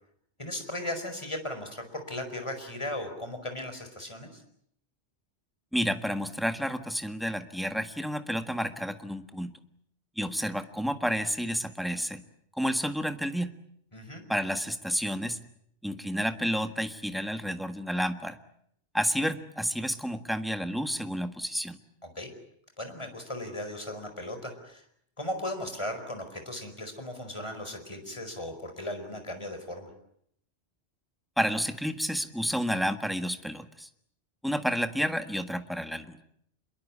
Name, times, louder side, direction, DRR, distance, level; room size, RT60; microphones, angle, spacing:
voice 1, 0.4-4.4 13.9-14.2 22.0-22.3 22.8-24.8 25.2-29.9, left 1 dB, 25° left, 6 dB, 5.0 m, -37 dB
voice 2, 5.7-9.5 10.2-12.2 12.5-13.5 14.3-15.4 15.8-18.4 18.9-21.8 31.4-33.9 34.4-36.2, equal, ahead, 8 dB, 1.5 m, -30 dB
27.0 x 22.5 x 8.6 m, 0.70 s
omnidirectional pair, 1.1 m